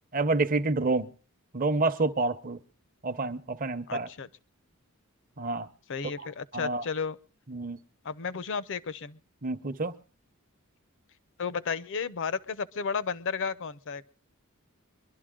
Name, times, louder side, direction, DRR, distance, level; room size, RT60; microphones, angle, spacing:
voice 1, 0.1-1.1 1.5-2.6 3.0-4.1 5.4-5.7 6.5-6.8 7.5-7.8 9.4-9.9, right 3 dB, 40° right, 0.8 m, -28 dB
voice 2, 3.9-4.3 5.9-7.2 8.0-9.2 11.4-14.0, left 5 dB, 60° left, 0.6 m, -33 dB
23.5 x 12.0 x 3.7 m
head